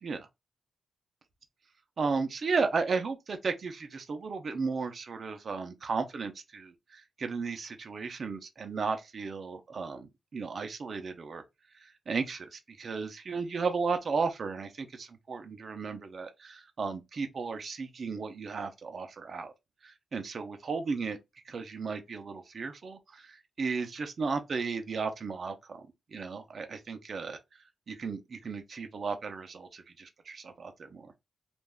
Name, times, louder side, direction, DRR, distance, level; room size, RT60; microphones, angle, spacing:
voice 1, 2.0-11.4 11.8-19.5 19.8-21.2 21.5-25.8 26.1-27.4 27.9-31.1, right 4 dB, 40° right, 0.6 m, -34 dB
3.4 x 2.5 x 2.3 m
wide cardioid pair, 175°, 0 cm